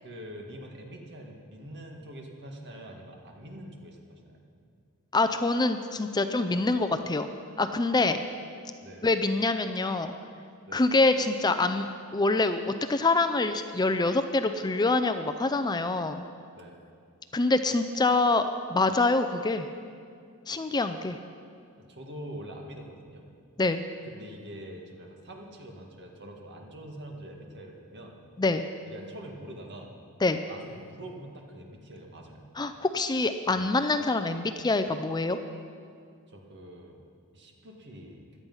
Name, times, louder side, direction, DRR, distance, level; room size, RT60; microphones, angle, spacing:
voice 1, 0.0-4.4 6.5-6.7 8.8-9.0 10.7-10.8 16.5-16.8 21.8-23.3 24.0-28.2 28.9-29.9 30.5-32.4 33.5-33.7 36.3-37.0 37.3-38.2, right 1 dB, 50° right, 1 dB, 1.9 m, -44 dB
voice 2, 5.1-7.3 7.6-8.2 9.0-10.1 10.7-16.3 17.3-18.4 18.7-19.7 20.5-21.2 23.6-23.8 28.4-28.7 30.2-30.4 32.6-35.4, left 3 dB, 20° left, 9 dB, 0.5 m, -25 dB
17.0 x 11.5 x 5.6 m, 2.3 s
head